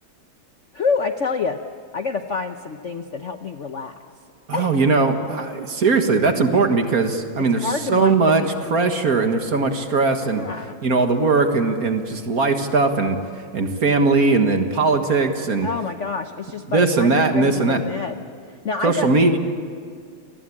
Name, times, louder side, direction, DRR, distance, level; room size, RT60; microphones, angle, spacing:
voice 1, 0.7-1.6 1.9-3.9 4.5-4.7 7.5-8.7 10.3-10.8 15.6-19.4, left 5 dB, 55° left, 7 dB, 0.9 m, -27 dB
voice 2, 4.5-8.4 8.7-10.4 10.8-13.2 13.5-15.7 16.7-17.8 18.8-19.4, right 3 dB, 45° right, 6 dB, 1.9 m, -19 dB
29.5 x 20.0 x 8.6 m, 2.2 s
omnidirectional pair, 2.3 m